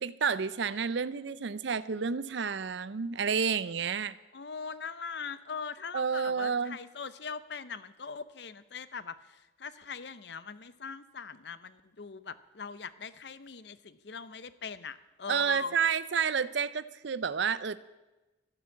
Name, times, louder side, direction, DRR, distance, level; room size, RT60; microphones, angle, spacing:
voice 1, 0.0-4.2 5.9-6.8 15.3-17.8, right 6 dB, 65° right, 16 dB, 0.5 m, -30 dB
voice 2, 4.3-15.8, left 5 dB, 60° left, 15 dB, 0.7 m, -41 dB
13.0 x 9.6 x 8.3 m, 1.1 s
head